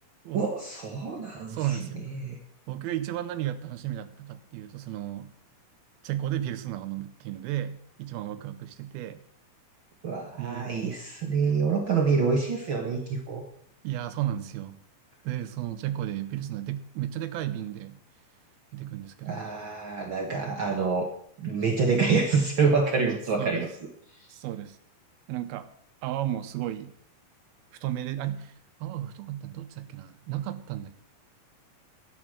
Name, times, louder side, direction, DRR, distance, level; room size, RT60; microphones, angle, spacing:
voice 1, 0.3-1.8 2.1-2.4 10.0-13.5 19.2-21.1 21.4-23.7, right 5 dB, 70° right, 2 dB, 1.1 m, -26 dB
voice 2, 1.5-2.0 2.7-5.3 6.0-9.2 10.4-10.8 13.8-14.8 15.2-18.0 18.7-19.5 23.4-23.7 24.3-24.8 25.3-25.7 26.0-26.9 27.8-28.5 28.8-31.0, right 12 dB, 85° right, 10 dB, 2.6 m, -33 dB
12.5 x 9.3 x 6.3 m, 0.68 s
omnidirectional pair, 4.3 m